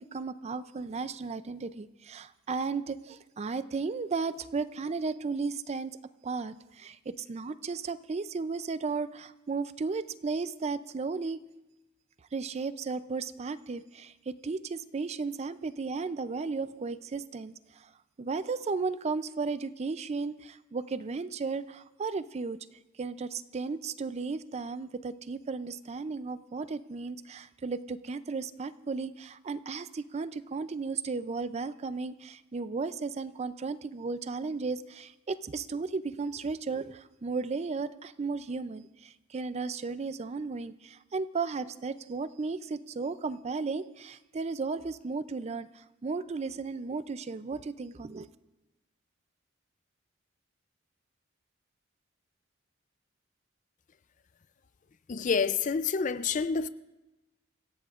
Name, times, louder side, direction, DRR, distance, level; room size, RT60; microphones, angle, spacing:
voice 1, 0.0-6.0 6.2-11.4 12.3-17.9 18.2-22.6 23.0-48.3, right 4 dB, 35° right, 0.4 m, -35 dB
voice 2, 55.1-56.7, left 5 dB, 40° left, 0.4 m, -28 dB
26.0 x 16.0 x 2.4 m
head